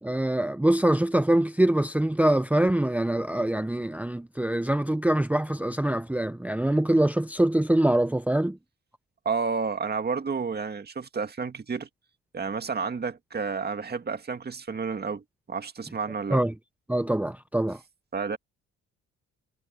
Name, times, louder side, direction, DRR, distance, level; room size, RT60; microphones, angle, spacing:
voice 1, 0.0-8.6 16.3-16.5 16.9-17.8, right 1 dB, 5° right, 0.7 m, -24 dB
voice 2, 9.3-11.9 12.3-16.4 18.1-18.4, right 5 dB, 35° right, 2.1 m, -31 dB
cardioid pair, 90°, 30 cm